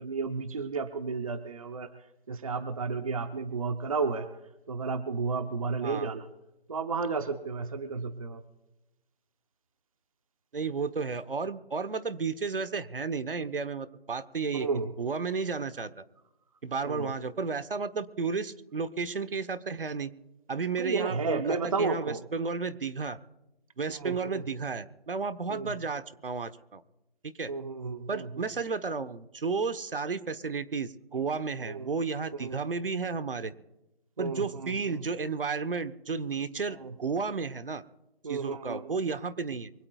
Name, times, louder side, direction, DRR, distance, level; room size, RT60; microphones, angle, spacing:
voice 1, 0.0-1.9 2.3-4.4 4.7-6.3 6.7-8.4 14.5-14.9 16.8-17.1 20.8-22.2 24.0-24.5 25.5-25.8 27.5-28.5 31.6-31.9 32.4-32.6 34.2-35.1 36.8-36.9 38.2-39.0, right 4 dB, 35° right, 10 dB, 0.9 m, -32 dB
voice 2, 10.5-14.7 15.0-16.0 16.6-20.1 20.5-23.2 23.8-26.8 27.2-27.5 28.1-33.5 34.2-37.8 38.3-39.7, right 4 dB, 65° right, 12 dB, 1.2 m, -32 dB
24.5 x 17.0 x 2.4 m, 0.94 s
figure-of-eight pair, 165°, 30 cm